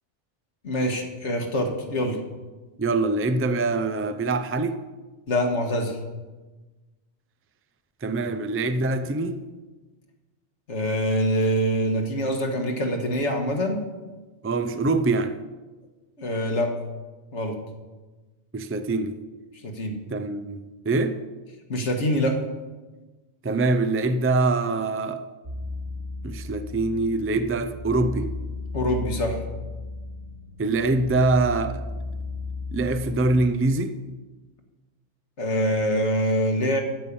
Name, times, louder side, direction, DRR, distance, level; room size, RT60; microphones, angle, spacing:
voice 1, 0.6-2.2 5.3-6.0 10.7-13.8 16.2-16.7 17.3-17.5 19.6-20.0 21.7-22.4 28.7-29.4 35.4-36.8, equal, 80° left, 3 dB, 1.9 m, -24 dB
voice 2, 2.8-4.8 8.0-9.4 14.4-15.3 18.5-19.2 20.1-21.2 23.4-25.2 26.2-28.3 30.6-31.8 32.7-34.0, right 3 dB, 20° right, 10 dB, 0.4 m, -24 dB
sound 1, 25.4-33.5, left 3 dB, 60° right, 3.9 m, -35 dB
14.0 x 5.5 x 8.5 m, 1.2 s
omnidirectional pair, 1.2 m